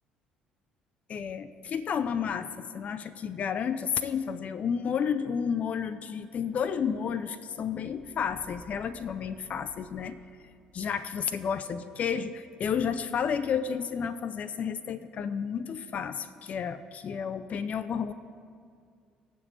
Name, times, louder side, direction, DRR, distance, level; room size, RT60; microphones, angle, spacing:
voice 1, 1.1-10.2 10.7-18.1, left 7 dB, 45° left, 12 dB, 0.5 m, -31 dB
19.5 x 7.2 x 3.3 m, 2.2 s
figure-of-eight pair, 50°, 3 cm